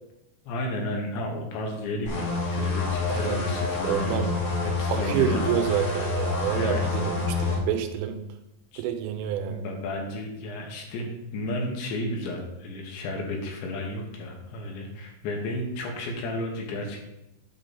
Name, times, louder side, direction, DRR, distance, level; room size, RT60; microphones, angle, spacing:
voice 1, 0.5-5.5 6.4-6.9 8.7-8.8 9.5-17.1, left 1 dB, 70° left, 1 dB, 3.2 m, -33 dB
sound 1, 2.1-7.6, left 4 dB, 45° left, 3.3 m, -28 dB
voice 2, 3.1-3.4 3.8-4.3 4.9-8.2 8.8-9.6, right 9 dB, 90° right, 7 dB, 3.3 m, -28 dB
9.1 x 3.8 x 7.1 m, 0.90 s
omnidirectional pair, 5.8 m